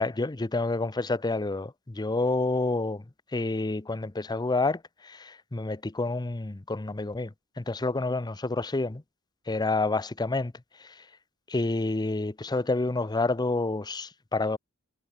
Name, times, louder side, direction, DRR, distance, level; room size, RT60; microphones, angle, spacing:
voice 1, 0.0-3.0 3.3-4.8 5.5-7.3 7.6-9.0 9.5-10.5 11.5-14.6, left 2 dB, 20° left, 0.6 m, -28 dB
head